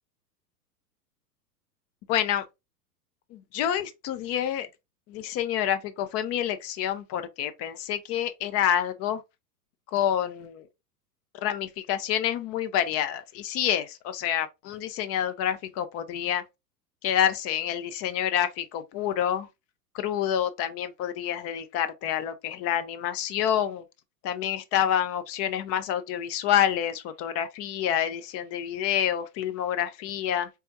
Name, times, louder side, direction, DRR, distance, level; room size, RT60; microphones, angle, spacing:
voice 1, 2.1-2.5 3.3-4.7 5.1-9.2 9.9-10.7 11.4-16.4 17.0-19.5 19.9-23.8 24.2-30.5, left 10 dB, 30° left, 0.6 m, -28 dB
4.4 x 3.5 x 2.7 m
hypercardioid pair, 100°, 49 cm